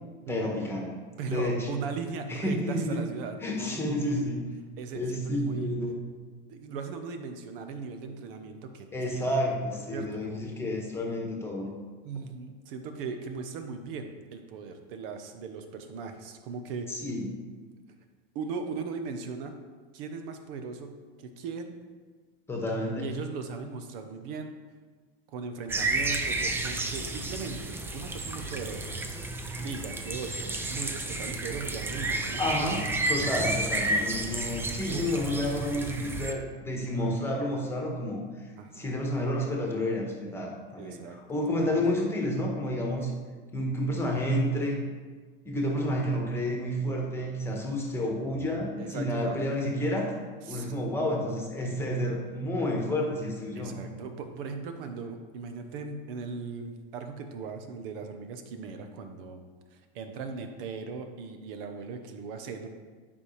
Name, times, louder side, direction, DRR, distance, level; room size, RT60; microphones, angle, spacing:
voice 1, 0.3-0.9 1.3-1.7 2.3-3.0 3.4-4.4 4.9-6.0 8.9-11.7 16.9-17.3 22.5-23.1 32.4-32.8 33.1-38.2 38.7-43.1 43.5-44.8 45.4-50.1 50.5-53.7, left 1 dB, 10° left, 0 dB, 1.3 m, -30 dB
voice 2, 1.2-4.2 4.8-5.7 6.5-9.2 9.9-10.4 12.0-16.9 18.3-19.6 19.9-20.9 21.2-21.7 23.0-24.5 25.3-29.0 29.6-32.7 34.9-35.1 36.9-37.2 38.6-38.9 40.8-41.5 43.1-43.2 45.7-45.8 48.8-49.4 50.5-50.7 53.5-59.4 59.7-62.7, right 5 dB, 65° right, 7 dB, 1.0 m, -38 dB
sound 1, 25.7-36.3, right 2 dB, 10° right, 0.3 m, -31 dB
9.5 x 5.5 x 3.3 m, 1.4 s
supercardioid pair, 135°, 30 cm